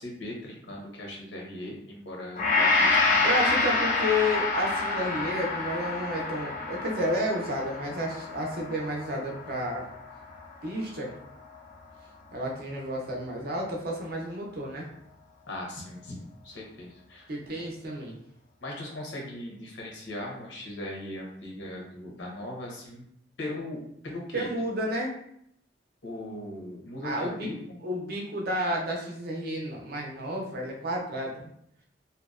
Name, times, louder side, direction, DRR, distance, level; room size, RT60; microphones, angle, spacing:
voice 1, 0.0-3.2 15.5-17.3 17.5-17.6 18.6-23.0 23.4-24.5 26.0-27.5, left 1 dB, 90° left, -1 dB, 0.8 m, -39 dB
Gong, 2.4-10.7 11.1-11.3, left 3 dB, 45° left, 0.4 m, -28 dB
voice 2, 3.2-9.9 10.6-11.1 12.3-14.9 17.3-18.2 24.3-25.1 27.0-27.5 27.8-31.5, equal, 55° right, 0 dB, 0.5 m, -31 dB
2.6 x 2.0 x 2.4 m, 0.71 s
head